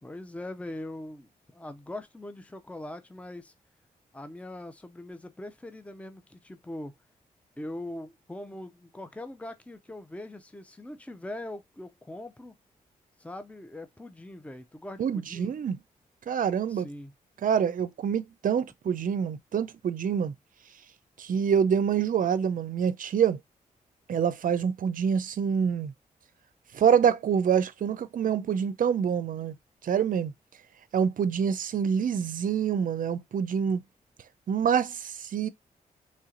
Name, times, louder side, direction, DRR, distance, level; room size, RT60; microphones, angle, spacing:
voice 1, 0.0-3.5 4.1-7.0 7.6-12.5 13.2-15.5 16.7-17.1, left 1 dB, 10° left, 0.6 m, -41 dB
voice 2, 15.0-15.8 16.3-16.9 17.4-20.3 21.2-23.4 24.1-25.9 26.7-29.5 29.8-30.3 30.9-33.8 34.5-35.5, right 7 dB, 60° right, 0.5 m, -26 dB
3.3 x 2.7 x 3.7 m
supercardioid pair, 45°, 16 cm